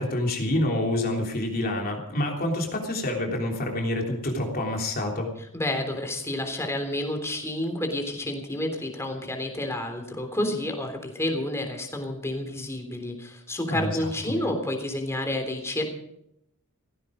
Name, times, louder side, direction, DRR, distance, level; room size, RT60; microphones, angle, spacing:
voice 1, 0.0-5.3 13.7-14.4, left 1 dB, 40° left, 1 dB, 3.4 m, -27 dB
voice 2, 5.5-15.8, left 1 dB, 10° left, 4 dB, 3.4 m, -30 dB
16.5 x 16.0 x 5.1 m, 0.75 s
head